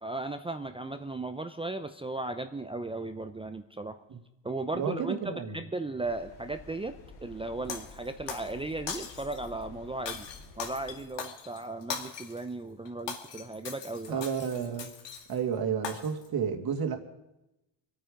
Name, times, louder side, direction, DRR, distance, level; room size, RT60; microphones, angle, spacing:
voice 1, 0.0-4.0 4.4-6.9 7.2-10.3 10.6-14.2, right 2 dB, 10° right, 8 dB, 0.6 m, -36 dB
voice 2, 4.7-5.6 14.1-14.9 15.3-17.0, right 7 dB, 50° right, 5 dB, 2.4 m, -31 dB
sound 1, 6.0-11.0, left 3 dB, 85° left, 3.8 m, -50 dB
Shatter, 7.7-8.5 8.9-9.5 10.1-12.4 12.8-15.4 15.8-16.3, left 6 dB, 60° left, 2.5 m, -40 dB
25.5 x 9.2 x 5.1 m, 0.91 s
cardioid pair, 105°, 48 cm